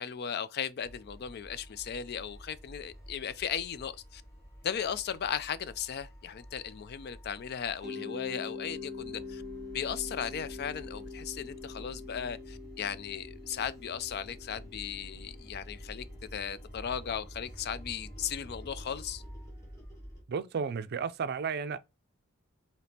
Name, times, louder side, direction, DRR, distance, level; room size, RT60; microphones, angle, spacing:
voice 1, 0.0-4.2 4.6-9.4 9.7-16.0 16.3-19.2, left 8 dB, 50° left, 0.4 m, -36 dB
sound 1, 0.8-7.9 8.2-20.2, equal, 15° left, 1.8 m, -49 dB
Mallet percussion, 7.8-16.6, left 4 dB, ahead, 1.9 m, -44 dB
voice 2, 20.3-21.8, right 6 dB, 50° right, 0.4 m, -33 dB
5.1 x 2.9 x 2.8 m
head